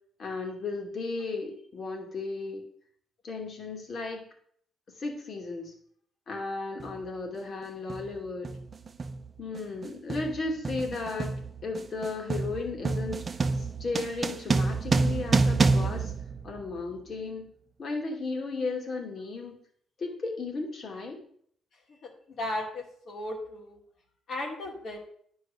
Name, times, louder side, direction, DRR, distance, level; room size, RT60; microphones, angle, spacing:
voice 1, 0.2-2.6 3.2-4.2 5.0-5.7 6.3-8.5 9.4-13.2 13.5-16.1 16.4-17.5 17.8-19.6 20.0-21.2, left 3 dB, 50° left, 2 dB, 2.6 m, -35 dB
sound 1, 6.8-7.0 7.9-8.2 8.4-17.0, right 3 dB, 35° right, 0.7 m, -28 dB
voice 2, 21.9-23.8 24.3-25.0, left 1 dB, 65° left, -2 dB, 2.7 m, -36 dB
10.5 x 4.7 x 6.6 m, 0.62 s
cardioid pair, 90°, 0 cm